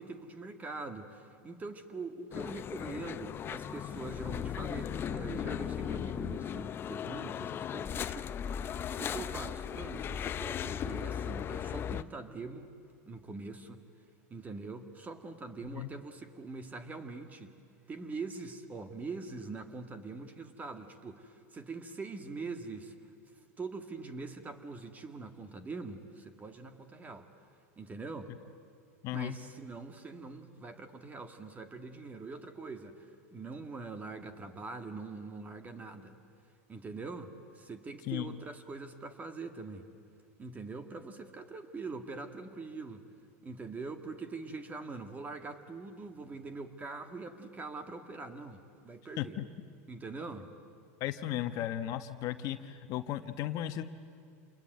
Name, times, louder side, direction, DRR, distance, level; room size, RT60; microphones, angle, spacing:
voice 1, 0.0-12.7 13.1-13.8 14.3-17.5 17.9-22.9 23.6-27.3 27.8-28.3 29.1-36.2 36.7-39.9 40.4-43.0 43.4-49.4 49.9-50.5, right 3 dB, 20° right, 7 dB, 2.0 m, -43 dB
sound 1, 2.3-12.0, left 9 dB, 30° left, 0.6 m, -37 dB
voice 2, 29.0-29.4 38.0-38.3 49.2-49.5 51.0-53.8, left 12 dB, 50° left, 9 dB, 1.2 m, -35 dB
27.5 x 21.5 x 9.3 m, 2.3 s
supercardioid pair, 125°, 8 cm